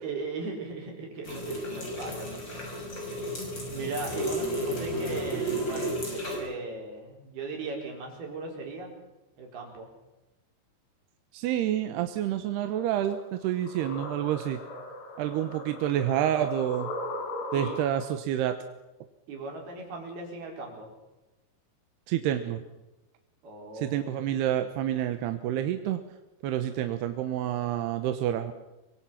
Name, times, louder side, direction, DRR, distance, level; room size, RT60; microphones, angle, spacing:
voice 1, 0.0-2.4 3.7-8.9 9.4-9.9 17.5-17.8 19.3-20.9 23.4-24.2, right 3 dB, 55° right, 1 dB, 6.4 m, -38 dB
sound 1, 1.2-6.4, right 1 dB, 25° left, 6.7 m, -33 dB
voice 2, 11.3-14.6 15.2-16.9 17.5-18.6 22.1-22.6 23.7-26.0 26.4-28.5, right 11 dB, 75° right, 8 dB, 2.8 m, -28 dB
sound 2, 13.1-18.1, left 2 dB, 65° left, 5.7 m, -39 dB
24.5 x 24.0 x 5.8 m, 1.0 s
omnidirectional pair, 5.4 m